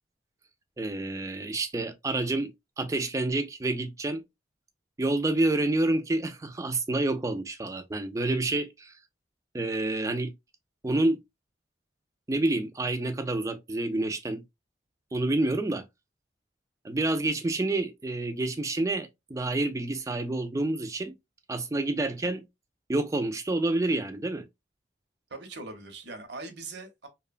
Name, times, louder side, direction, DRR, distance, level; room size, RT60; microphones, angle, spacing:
voice 1, 0.8-4.2 5.0-8.9 9.5-10.3 10.8-11.2 12.3-14.4 15.1-15.9 16.8-21.1 21.5-22.4 22.9-24.5, right 2 dB, 15° right, 0.3 m, -28 dB
voice 2, 25.3-27.1, right 3 dB, 65° right, 0.7 m, -41 dB
2.8 x 2.1 x 2.4 m
head